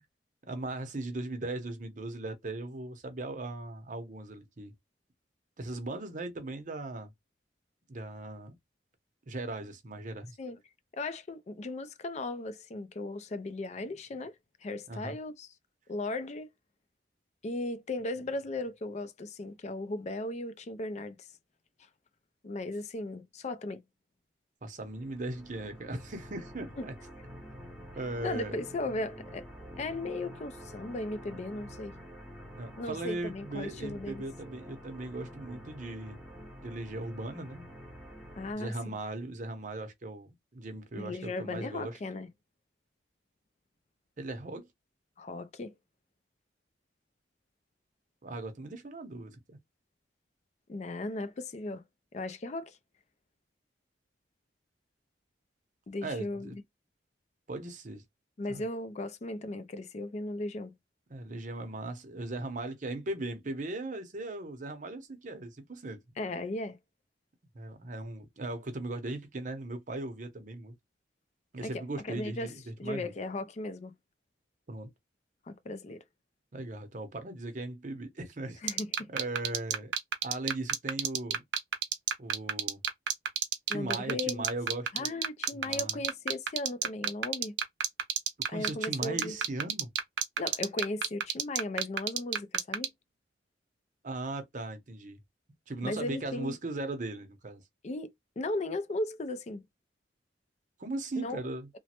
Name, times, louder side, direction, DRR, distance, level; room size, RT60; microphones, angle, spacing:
voice 1, 0.5-4.7 5.6-7.1 7.9-8.6 9.3-10.4 14.9-15.2 24.6-26.9 27.8-28.6 32.6-36.2 36.6-37.6 38.5-42.0 44.2-44.7 48.2-49.6 56.0-56.6 57.5-58.0 58.5-58.6 61.1-66.0 67.5-70.7 71.5-73.1 74.7-74.9 76.5-78.6 79.1-79.9 80.2-81.4 82.2-82.8 83.7-85.1 85.5-86.0 88.5-89.9 94.0-95.2 95.7-97.6 100.8-101.7, right 2 dB, 45° right, 0.7 m, -38 dB
voice 2, 11.0-14.3 14.6-15.5 15.9-16.5 17.4-21.3 22.4-23.8 26.8-26.9 28.2-29.5 29.8-31.9 32.8-34.3 38.4-38.7 40.9-42.3 45.2-45.7 50.7-51.8 52.1-52.8 55.9-56.6 58.4-60.7 66.2-66.8 71.6-73.9 75.5-76.0 78.6-79.1 83.7-84.5 84.9-87.5 88.5-89.4 90.4-92.9 95.8-96.6 97.8-99.6 101.2-101.4, left 2 dB, 40° left, 0.4 m, -37 dB
sound 1, 24.8-38.5, equal, 5° right, 0.9 m, -48 dB
sound 2, 78.7-92.9, right 9 dB, 85° right, 0.6 m, -28 dB
3.0 x 2.1 x 2.8 m
head